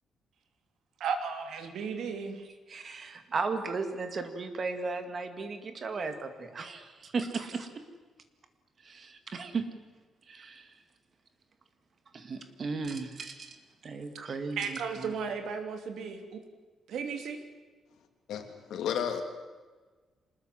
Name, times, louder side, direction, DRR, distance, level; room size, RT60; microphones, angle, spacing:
voice 1, 1.0-2.5 14.6-16.4 16.9-17.4, right 5 dB, 65° right, 7 dB, 3.1 m, -35 dB
voice 2, 2.7-7.7 8.8-9.6 10.3-10.7 12.1-13.6 13.8-15.1, right 4 dB, 30° right, 8 dB, 2.2 m, -36 dB
voice 3, 18.3-19.2, left 8 dB, 75° left, 6 dB, 3.1 m, -32 dB
25.5 x 20.5 x 7.7 m, 1.4 s
cardioid pair, 175°, 0 cm